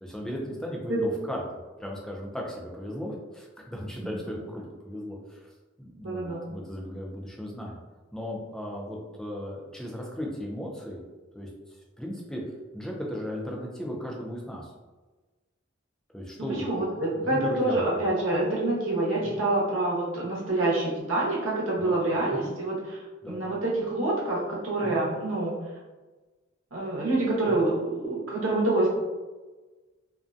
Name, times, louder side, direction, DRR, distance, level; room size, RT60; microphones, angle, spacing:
voice 1, 0.0-5.5 5.8-7.8 8.1-11.0 11.3-11.5 12.0-12.4 12.7-14.7 16.1-16.7 17.1-18.1 19.2-19.4 21.8-22.0 22.3-22.5 23.2-23.4 24.8-25.0 27.5-27.6, equal, 5° left, -2 dB, 0.4 m, -36 dB
voice 2, 6.0-6.4 16.6-23.0 23.2-25.6 26.7-28.9, right 2 dB, 75° right, -5 dB, 0.9 m, -27 dB
2.5 x 2.2 x 2.5 m, 1.2 s
head